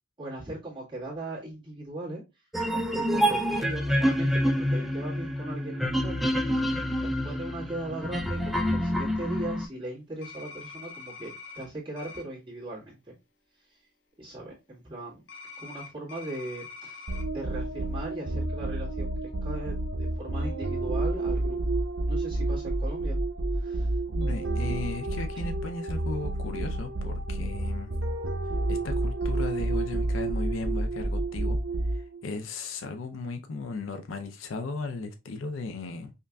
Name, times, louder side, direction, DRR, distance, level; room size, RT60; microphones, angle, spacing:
voice 1, 0.2-2.2 2.7-13.1 13.7-13.8 14.2-15.2 15.6-21.6 22.1-23.2 23.5-24.0 24.3-24.4, right 1 dB, 25° right, 1.7 m, -39 dB
sound 1, 2.5-9.7, equal, ahead, 0.4 m, -27 dB
sound 2, 10.2-11.7 12.0-12.2 15.3-17.2, left 5 dB, 65° left, 1.0 m, -44 dB
sound 3, 17.1-32.2, right 2 dB, 75° right, 0.7 m, -29 dB
voice 2, 24.2-27.9 28.7-31.6 31.9-36.1, left 3 dB, 85° left, 0.5 m, -36 dB
5.4 x 2.5 x 2.2 m
head